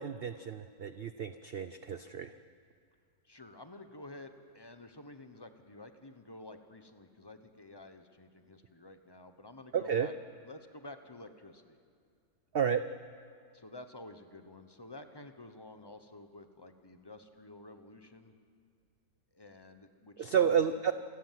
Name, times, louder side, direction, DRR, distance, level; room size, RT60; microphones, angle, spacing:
voice 1, 0.0-2.3 9.7-10.1 12.5-12.8 20.2-20.9, right 8 dB, 75° right, 11 dB, 0.5 m, -31 dB
voice 2, 3.2-10.1 10.4-11.8 13.5-18.3 19.3-20.7, left 2 dB, 20° left, 8 dB, 0.8 m, -51 dB
27.0 x 13.5 x 7.5 m, 2.3 s
omnidirectional pair, 1.7 m